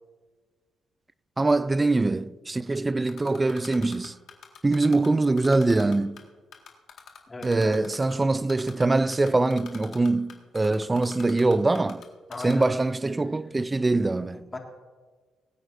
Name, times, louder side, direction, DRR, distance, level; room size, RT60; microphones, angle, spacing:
voice 1, 1.4-4.1 4.6-6.2 7.4-12.0 12.4-14.4, right 2 dB, 20° right, 0.4 m, -23 dB
Typing, 3.1-5.1 5.4-6.2 6.5-8.1 8.5-8.8 9.1-12.0 12.3-12.7, left 7 dB, 70° left, 1.8 m, -44 dB
voice 2, 7.3-7.8 12.3-12.7 14.5-14.6, left 3 dB, 25° left, 2.0 m, -36 dB
21.5 x 9.0 x 2.6 m
cardioid pair, 90°, 0 cm